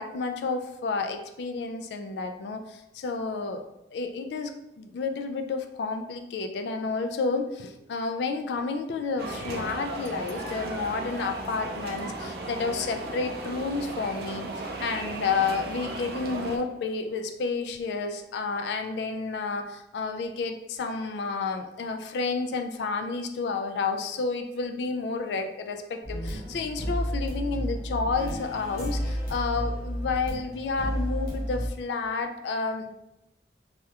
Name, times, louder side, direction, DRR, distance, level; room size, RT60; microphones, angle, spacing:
voice 1, 0.0-3.6 3.9-4.5 4.8-32.9, left 4 dB, 75° left, 6 dB, 0.3 m, -30 dB
sound 1, 9.2-16.6, right 2 dB, 55° right, 0.4 m, -36 dB
sound 2, 26.0-31.7, equal, 60° left, 1.0 m, -31 dB
3.4 x 2.3 x 2.8 m, 0.88 s
head